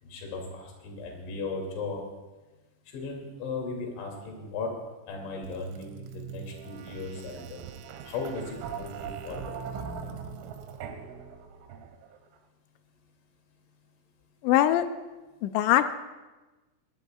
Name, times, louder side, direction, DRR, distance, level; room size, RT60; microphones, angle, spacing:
voice 1, 0.0-2.0 2.9-4.7 5.1-7.6 8.1-9.5, left 3 dB, 65° left, 0 dB, 5.0 m, -36 dB
sound 1, 5.4-12.2, right 6 dB, 85° right, 3.8 m, -41 dB
voice 2, 14.4-14.9 15.4-15.9, left 12 dB, 85° left, 9 dB, 2.6 m, -22 dB
22.5 x 20.5 x 2.4 m, 1.2 s
omnidirectional pair, 6.0 m